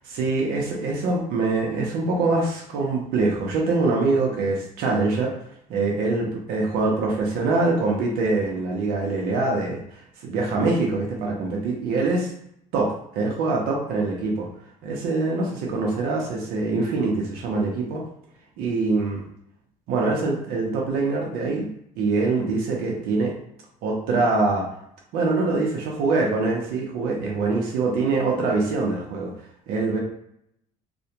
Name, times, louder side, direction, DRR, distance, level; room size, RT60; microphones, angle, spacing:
voice 1, 0.1-5.3 5.7-12.3 12.7-14.5 14.8-18.0 18.6-19.2 19.9-21.7 22.0-23.3 23.8-24.7 25.1-29.3 29.7-30.0, right 3 dB, 80° right, -1 dB, 0.7 m, -24 dB
2.4 x 2.1 x 2.8 m, 0.73 s
supercardioid pair, 95°, 15 cm